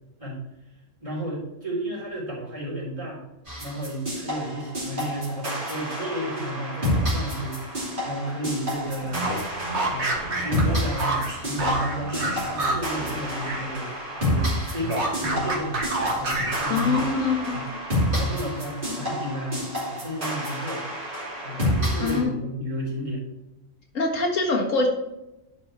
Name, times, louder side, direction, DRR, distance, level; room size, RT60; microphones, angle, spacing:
voice 1, 1.0-3.2 3.6-9.4 9.9-15.8 16.1-17.0 17.5-17.6 18.1-19.6 19.9-20.8 21.4-23.2, right 1 dB, 25° right, -6 dB, 3.8 m, -32 dB
sound 1, 3.5-22.2, equal, 40° right, 3.1 m, -29 dB
sound 2, 9.0-13.7 14.0-17.3, right 2 dB, 60° right, 1.9 m, -29 dB
voice 2, 16.7-17.8 22.0-22.3 23.9-24.9, left 4 dB, 85° left, 0 dB, 2.0 m, -24 dB
11.0 x 4.8 x 4.4 m, 0.93 s
omnidirectional pair, 1.3 m